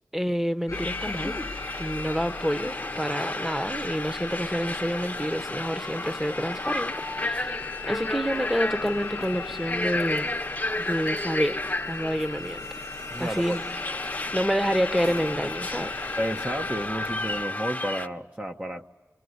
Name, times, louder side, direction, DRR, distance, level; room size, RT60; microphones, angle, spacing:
voice 1, 0.1-1.4 1.8-10.3 10.8-12.8 13.2-13.6 14.3-16.0, equal, 5° right, 1.1 m, -28 dB
sound 1, 0.7-17.4, left 5 dB, 75° left, 0.8 m, -39 dB
sound 2, 0.7-18.1, left 2 dB, 25° left, 1.0 m, -33 dB
sound 3, 7.2-17.1, right 1 dB, 75° right, 4.2 m, -51 dB
voice 2, 13.1-13.6 16.2-18.9, right 1 dB, 25° right, 1.0 m, -31 dB
25.0 x 24.5 x 9.6 m
wide cardioid pair, 45°, 6 cm